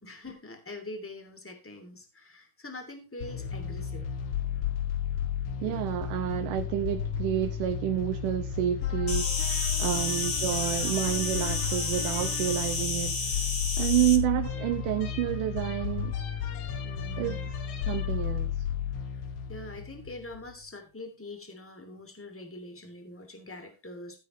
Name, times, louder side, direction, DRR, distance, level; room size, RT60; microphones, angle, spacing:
voice 1, 0.0-4.1 5.6-5.9 16.8-17.5 19.5-24.2, left 2 dB, 5° left, 2.3 m, -44 dB
sound 1, 3.2-20.5, left 8 dB, 65° left, 2.9 m, -33 dB
voice 2, 5.6-13.4 13.8-16.1 17.2-17.4 17.9-18.5, right 13 dB, 75° right, 2.3 m, -29 dB
Insect, 9.1-14.2, left 3 dB, 45° left, 0.8 m, -31 dB
14.5 x 9.4 x 3.2 m
omnidirectional pair, 3.9 m